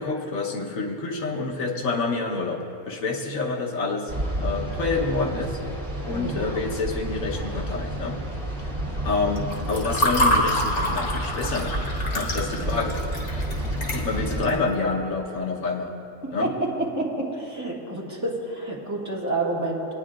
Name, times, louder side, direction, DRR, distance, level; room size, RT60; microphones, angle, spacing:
voice 1, 0.0-4.1 4.4-5.6 6.0-8.2 9.0-11.8 12.1-13.0 13.9-15.9 16.3-16.5, left 3 dB, 70° left, 0 dB, 1.5 m, -28 dB
sound 1, 4.1-14.5, right 1 dB, 35° right, 1.9 m, -30 dB
voice 2, 6.1-6.5 12.5-12.9 14.3-14.6 16.4-19.9, right 2 dB, 10° right, -6 dB, 1.7 m, -29 dB
Water / Fill (with liquid), 9.4-14.5, equal, 90° left, 1.9 m, -26 dB
22.0 x 9.4 x 2.5 m, 2.8 s
omnidirectional pair, 1.5 m